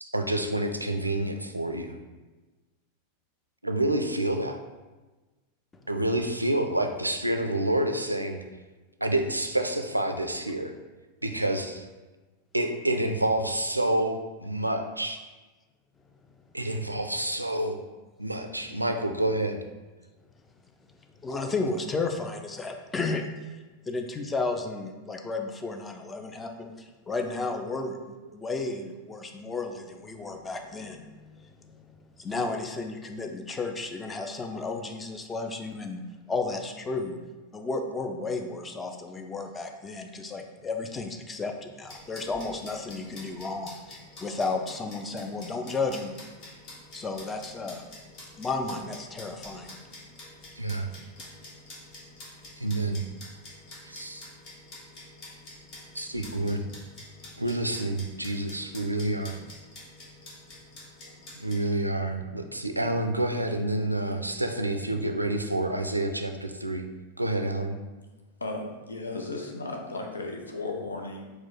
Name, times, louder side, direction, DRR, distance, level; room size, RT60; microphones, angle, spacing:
voice 1, 0.0-2.0 3.6-4.6 5.9-8.4 9.0-10.7 11.2-11.9 12.5-15.2 16.5-17.8 18.2-19.6 50.6-50.9 52.6-53.0 53.9-54.3 55.9-56.7 57.4-59.4 61.4-66.9 67.2-67.8, right 1 dB, 85° right, 6 dB, 0.3 m, -28 dB
voice 2, 21.2-23.6 23.9-28.0 28.3-36.0 36.3-37.2 37.5-46.1 46.9-47.8 48.4-49.7 51.2-51.3, left 3 dB, 15° left, 4 dB, 0.4 m, -33 dB
sound 1, 41.9-61.6, left 1 dB, 40° left, 1.1 m, -47 dB
voice 3, 68.4-71.3, left 2 dB, 75° left, 2 dB, 0.6 m, -35 dB
4.4 x 2.2 x 4.1 m, 1.2 s
figure-of-eight pair, 90°, 0 cm